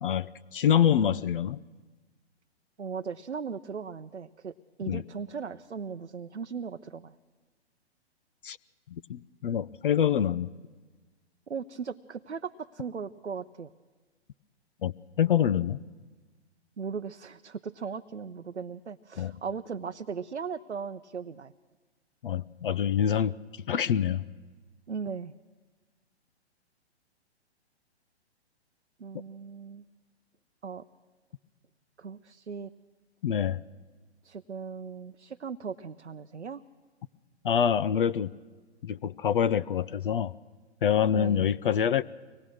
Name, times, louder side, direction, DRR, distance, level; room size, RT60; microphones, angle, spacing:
voice 1, 0.0-1.6 4.9-5.0 8.4-8.6 8.9-10.5 14.8-15.8 19.2-19.3 22.2-23.4 23.7-24.2 33.2-33.6 37.4-38.3 38.8-40.3 40.8-42.0, left 9 dB, 50° left, 16 dB, 0.6 m, -26 dB
voice 2, 2.8-7.1 11.5-13.7 16.8-21.5 24.9-25.3 29.0-29.8 30.6-30.8 32.0-32.7 34.2-36.6 41.1-41.5, right 6 dB, 90° right, 8 dB, 0.7 m, -38 dB
24.0 x 18.5 x 6.3 m, 1.3 s
figure-of-eight pair, 125°, 34 cm